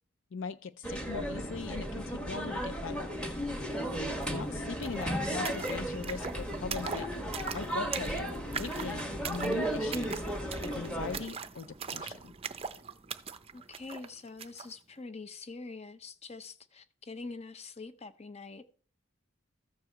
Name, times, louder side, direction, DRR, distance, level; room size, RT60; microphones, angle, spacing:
voice 1, 0.3-3.2 4.3-7.1 7.5-10.2 10.7-12.3, left 5 dB, 60° left, 0.4 m, -40 dB
sound 1, 0.8-11.2, right 1 dB, 5° left, 1.4 m, -35 dB
sound 2, 4.2-4.3 4.5-14.7, right 6 dB, 30° right, 0.5 m, -42 dB
voice 2, 13.5-18.6, left 3 dB, 30° left, 0.7 m, -45 dB
14.0 x 4.7 x 6.6 m
head